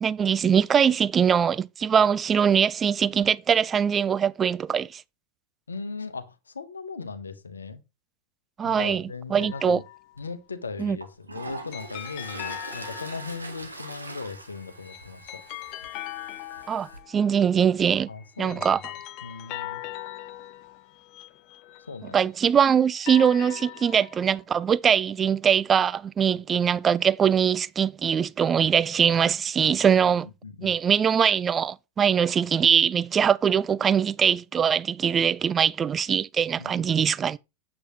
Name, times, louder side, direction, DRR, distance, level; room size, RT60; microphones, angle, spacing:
voice 1, 0.0-5.0 8.6-9.0 9.3-9.8 10.8-11.0 16.7-18.1 18.4-18.8 22.1-30.3 30.6-37.4, right 7 dB, 20° right, 0.3 m, -22 dB
voice 2, 5.7-7.8 8.6-9.8 10.2-15.4 18.1-18.8 19.2-19.8 21.9-22.2 26.3-26.4 30.0-30.2 30.4-30.8 36.6-37.0, left 4 dB, 75° left, 1.0 m, -38 dB
sound 1, 9.4-10.1 11.7-13.7 14.6-17.4 18.1-22.2 22.8-24.4, left 14 dB, 40° left, 0.7 m, -40 dB
Toilet flush, 10.1-10.2 10.8-17.0, right 3 dB, 80° right, 1.5 m, -42 dB
8.2 x 7.3 x 3.0 m
figure-of-eight pair, 90°, 0 cm